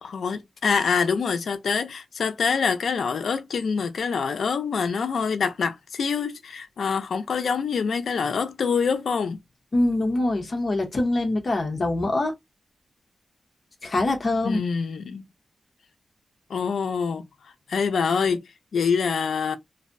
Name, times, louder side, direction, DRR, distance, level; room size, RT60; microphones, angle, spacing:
voice 1, 0.0-9.4 14.4-15.3 16.5-17.3 17.7-19.6, left 5 dB, 90° left, 0.4 m, -25 dB
voice 2, 9.7-12.3 13.8-14.6, left 2 dB, 40° left, 0.7 m, -24 dB
2.6 x 2.0 x 2.4 m
wide cardioid pair, 160°, 0 cm